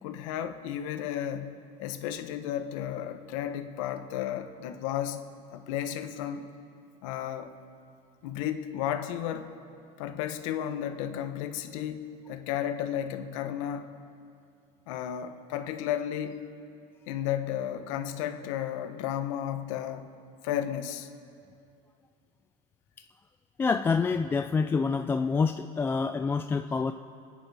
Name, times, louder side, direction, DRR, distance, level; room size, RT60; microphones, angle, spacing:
voice 1, 0.0-5.2 5.5-6.5 7.0-7.5 8.2-9.5 10.0-13.9 14.9-16.4 17.1-20.1 20.4-21.1, left 10 dB, 85° left, 8 dB, 1.2 m, -33 dB
voice 2, 23.6-26.9, left 5 dB, 15° left, 6 dB, 0.3 m, -27 dB
29.0 x 9.7 x 4.8 m, 2.5 s
cardioid pair, 150°, 16 cm